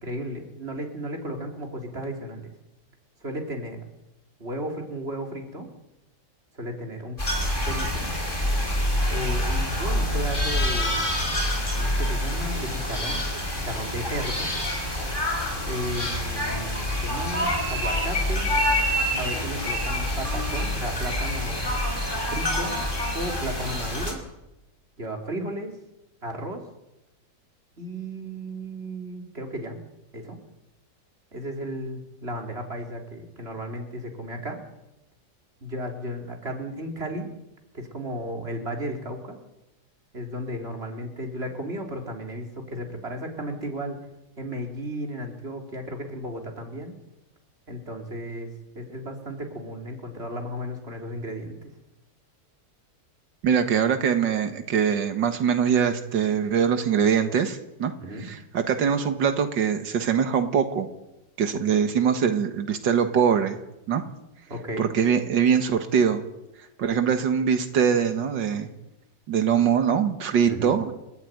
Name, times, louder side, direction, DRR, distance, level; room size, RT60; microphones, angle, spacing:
voice 1, 0.0-2.4 3.2-3.8 4.4-5.7 6.5-7.2 7.6-8.1 9.1-11.3 11.7-13.2 13.5-14.5 15.7-18.5 19.2-21.7 22.3-22.8 23.1-24.2 25.0-25.8 26.2-26.6 27.8-29.8 30.1-30.4 31.3-34.6 35.6-37.3 37.7-39.4 40.1-44.0 44.4-46.9 47.7-48.5 48.7-51.7 58.0-58.3 61.7-61.8 64.5-64.9 70.5-70.8, equal, 35° right, 2 dB, 4.0 m, -34 dB
sound 1, 7.2-24.1, left 1 dB, 25° left, 5.4 m, -26 dB
voice 2, 53.4-57.9 58.2-60.9 61.4-63.6 63.9-64.0 64.8-66.2 66.8-68.7 69.3-70.9, right 7 dB, 90° right, 7 dB, 2.2 m, -23 dB
29.5 x 13.5 x 9.4 m, 0.94 s
omnidirectional pair, 1.9 m